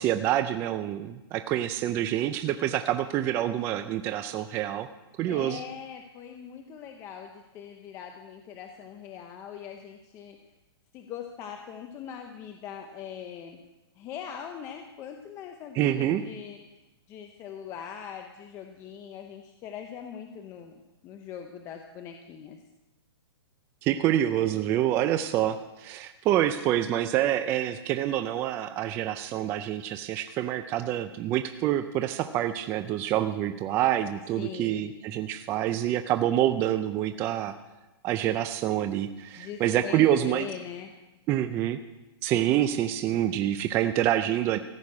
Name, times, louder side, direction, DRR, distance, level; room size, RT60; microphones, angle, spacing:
voice 1, 0.0-4.9 5.2-5.6 15.7-16.2 23.8-37.5 38.0-40.5 41.3-41.8 42.2-44.6, right 12 dB, 15° right, 9 dB, 0.3 m, -27 dB
voice 2, 5.3-10.4 10.9-13.6 14.0-16.6 17.1-22.6 34.3-34.9 39.4-40.9, left 8 dB, 20° left, 5 dB, 0.7 m, -41 dB
14.5 x 6.4 x 8.4 m, 1.1 s
hypercardioid pair, 155°, 14 cm